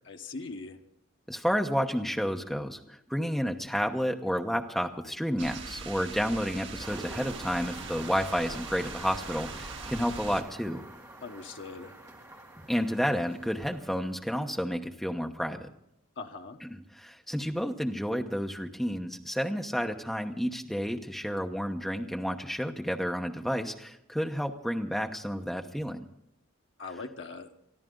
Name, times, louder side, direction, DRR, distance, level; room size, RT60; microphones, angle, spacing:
voice 1, 0.1-0.8 11.2-12.0 16.2-16.6 26.8-27.5, left 3 dB, 60° left, 4 dB, 1.2 m, -41 dB
voice 2, 1.3-10.8 12.7-15.7 16.6-26.1, equal, ahead, 3 dB, 0.9 m, -31 dB
sound 1, 5.4-10.4, right 4 dB, 60° right, 1.8 m, -41 dB
sound 2, 6.8-14.3, right 1 dB, 15° right, 2.0 m, -46 dB
23.5 x 13.5 x 3.8 m, 0.79 s
head